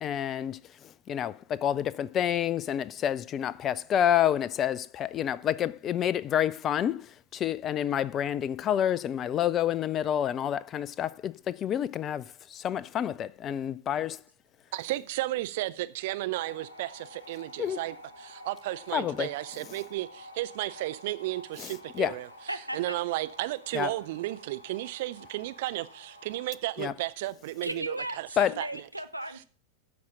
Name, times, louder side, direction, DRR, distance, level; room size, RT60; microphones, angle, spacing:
voice 1, 0.0-14.2 17.6-17.8 18.9-19.3 21.6-22.2 23.7-23.9 26.8-26.9 28.4-28.5, left 10 dB, 30° left, 0.4 m, -29 dB
voice 2, 14.7-22.3 22.7-28.3 28.6-28.7, right 17 dB, 50° right, 0.6 m, -33 dB
sound 1, 16.3-26.6, left 1 dB, 75° left, 1.3 m, -50 dB
voice 3, 27.6-29.4, right 1 dB, 90° right, 0.7 m, -35 dB
12.0 x 4.3 x 6.1 m
figure-of-eight pair, 90°, 0 cm